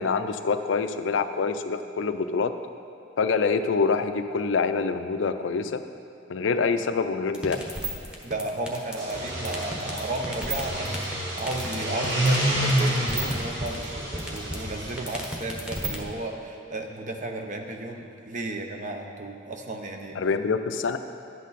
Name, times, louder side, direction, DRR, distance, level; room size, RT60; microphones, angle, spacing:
voice 1, 0.0-2.5 3.2-5.8 6.3-7.6 20.2-21.0, left 4 dB, 75° left, 9 dB, 0.5 m, -25 dB
sound 1, 7.3-16.0, right 1 dB, 5° right, 1.1 m, -32 dB
voice 2, 8.2-20.2, right 2 dB, 40° right, 4 dB, 0.8 m, -34 dB
sound 2, 8.9-15.2, equal, 65° right, 1.5 m, -29 dB
11.0 x 8.3 x 4.1 m, 2.6 s
head